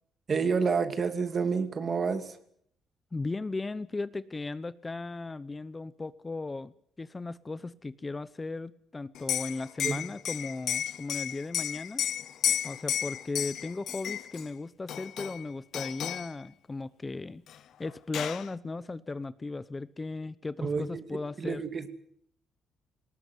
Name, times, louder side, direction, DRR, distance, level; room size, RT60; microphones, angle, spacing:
voice 1, 0.3-2.4 9.8-10.0 20.6-21.0 21.4-21.9, right 5 dB, 40° right, 8 dB, 2.7 m, -29 dB
voice 2, 3.1-6.7 7.0-12.0 12.6-17.4 17.8-21.6, left 3 dB, 25° left, 16 dB, 0.9 m, -36 dB
Liquid, 9.1-14.5 14.9-15.4 15.7-16.3 17.5-17.6 17.8-18.5, left 10 dB, 70° left, 0.9 m, -33 dB
20.0 x 18.0 x 9.5 m, 0.69 s
cardioid pair, 90°, 0 cm